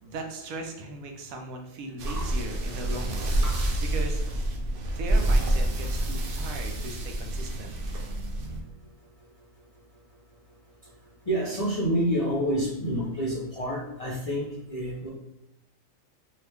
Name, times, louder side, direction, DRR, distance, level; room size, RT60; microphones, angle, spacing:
voice 1, 0.0-3.4 3.9-4.2 4.9-7.7, right 2 dB, 85° right, 3 dB, 1.0 m, -38 dB
voice 2, 2.0-2.3 3.4-3.8 10.8-10.9 11.3-15.1, equal, 50° left, -6 dB, 0.4 m, -29 dB
sound 1, 2.0-8.6, right 1 dB, 65° right, 0.5 m, -27 dB
2.8 x 2.4 x 3.3 m, 0.88 s
omnidirectional pair, 1.4 m